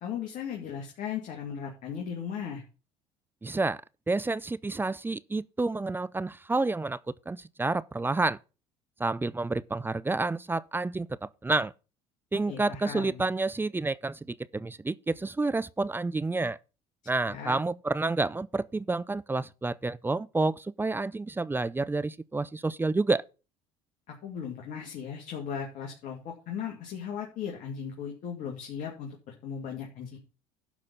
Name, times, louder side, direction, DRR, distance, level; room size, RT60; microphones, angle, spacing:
voice 1, 0.0-2.6 12.5-13.2 17.2-17.6 24.1-30.2, left 7 dB, 60° left, 2.4 m, -37 dB
voice 2, 3.4-7.0 7.3-8.4 9.0-11.7 12.3-16.6 17.1-23.2, right 3 dB, 15° right, 0.5 m, -29 dB
11.5 x 4.2 x 7.1 m
hypercardioid pair, 75°, 15 cm